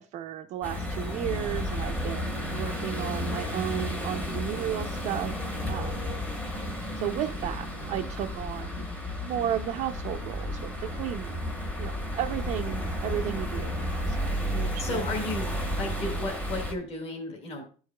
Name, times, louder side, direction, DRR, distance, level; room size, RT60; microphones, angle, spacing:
voice 1, 0.0-5.3 5.7-6.0 6.9-8.9 9.2-15.0, right 11 dB, 55° right, 3 dB, 0.4 m, -34 dB
sound 1, 0.6-16.7, equal, 10° left, 0.9 m, -32 dB
voice 2, 14.8-15.5 15.8-17.6, left 2 dB, 40° left, 0 dB, 1.4 m, -33 dB
12.5 x 4.7 x 2.2 m, 0.39 s
cardioid pair, 180°, 15 cm